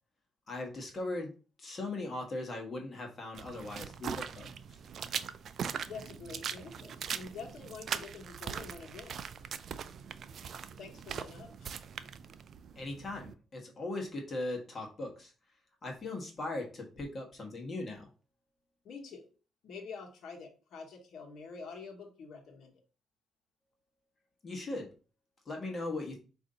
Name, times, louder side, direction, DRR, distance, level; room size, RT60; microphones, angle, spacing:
voice 1, 0.5-1.3 1.6-4.5 12.8-15.3 15.8-18.1 24.4-24.9 25.5-26.2, left 2 dB, 40° left, 1 dB, 1.3 m, -39 dB
sound 1, 3.3-13.3, right 7 dB, 60° right, 0.4 m, -41 dB
voice 2, 5.9-9.2 10.8-11.7 18.8-19.3 19.6-22.8, left 5 dB, 70° left, 0 dB, 1.1 m, -47 dB
4.9 x 2.6 x 3.8 m, 0.35 s
cardioid pair, 90°, 0 cm